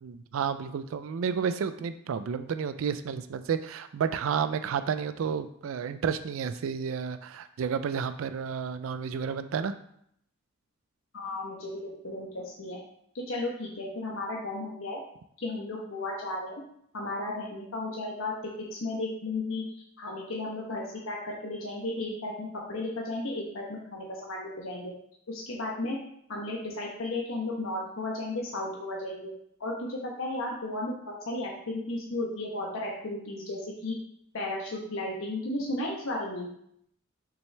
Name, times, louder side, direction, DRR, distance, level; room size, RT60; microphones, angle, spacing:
voice 1, 0.0-9.7, right 6 dB, 80° right, 11 dB, 0.4 m, -31 dB
voice 2, 11.1-12.8 13.1-15.0 15.4-16.6 16.9-18.3 18.7-19.6 20.0-24.9 25.3-26.0 26.3-29.3 29.6-33.9 34.3-36.5, left 2 dB, 90° left, -2 dB, 1.1 m, -34 dB
6.2 x 6.1 x 3.3 m, 0.71 s
head